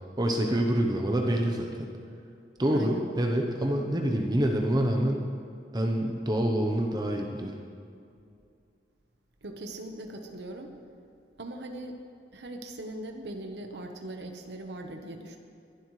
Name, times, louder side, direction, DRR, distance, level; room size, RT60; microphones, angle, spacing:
voice 1, 0.2-1.9 2.6-5.3 5.7-7.5, right 1 dB, 25° right, 2 dB, 0.9 m, -26 dB
voice 2, 2.7-3.0 9.4-10.7 11.4-12.0 12.3-15.4, right 1 dB, 70° right, 4 dB, 1.1 m, -40 dB
23.0 x 11.5 x 3.2 m, 2.5 s
head